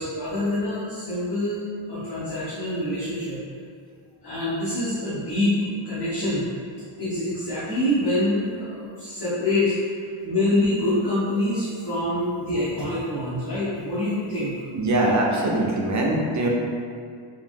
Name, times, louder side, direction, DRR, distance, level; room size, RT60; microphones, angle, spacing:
voice 1, 0.0-1.6 1.9-3.4 4.2-6.4 7.0-9.7 10.2-14.5, left 1 dB, 60° left, -12 dB, 0.9 m, -25 dB
voice 2, 14.7-16.5, right 1 dB, 40° right, -2 dB, 0.4 m, -22 dB
3.0 x 2.5 x 2.5 m, 2.2 s
wide cardioid pair, 120°, 46 cm